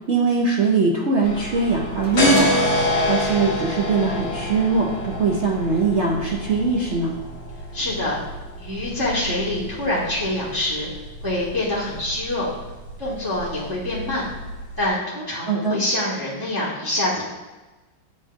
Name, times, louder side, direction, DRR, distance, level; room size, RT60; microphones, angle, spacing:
voice 1, 0.1-7.2 15.5-15.8, right 4 dB, 85° right, -2 dB, 0.6 m, -21 dB
drum hats, 1.2-14.9, left 1 dB, 30° left, 1.7 m, -28 dB
sound 1, 2.0-6.7, right 1 dB, 30° right, 0.8 m, -32 dB
voice 2, 7.7-8.2 8.6-10.9 11.2-12.5 13.0-14.3 14.8-17.2, left 1 dB, 10° right, -6 dB, 1.2 m, -25 dB
10.0 x 3.7 x 2.6 m, 1.2 s
omnidirectional pair, 2.2 m